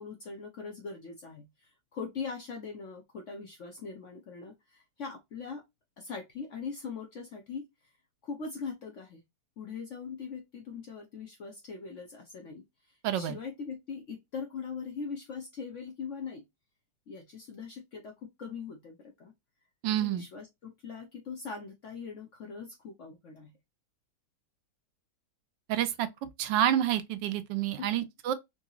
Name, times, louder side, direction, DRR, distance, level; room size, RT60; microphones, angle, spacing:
voice 1, 0.0-5.6 6.0-7.7 8.2-9.2 9.6-16.4 17.1-19.3 19.9-23.5 27.8-27.9, left 5 dB, 60° left, 0.8 m, -41 dB
voice 2, 13.0-13.4 19.8-20.2 25.7-26.1 26.4-28.3, right 11 dB, 80° right, 1.2 m, -28 dB
3.8 x 2.7 x 2.3 m
omnidirectional pair, 1.9 m